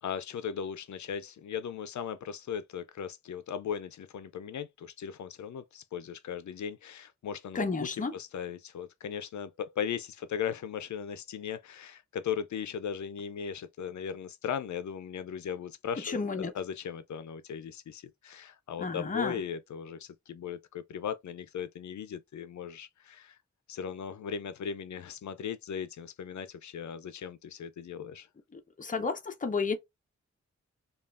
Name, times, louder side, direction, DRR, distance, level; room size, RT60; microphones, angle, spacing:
voice 1, 0.0-23.4 23.7-28.3, left 8 dB, 75° left, 0.5 m, -38 dB
voice 2, 7.5-8.1 16.0-16.5 18.8-19.4 28.5-29.8, left 4 dB, 30° left, 0.6 m, -32 dB
5.3 x 2.3 x 2.4 m
wide cardioid pair, 145°, 29 cm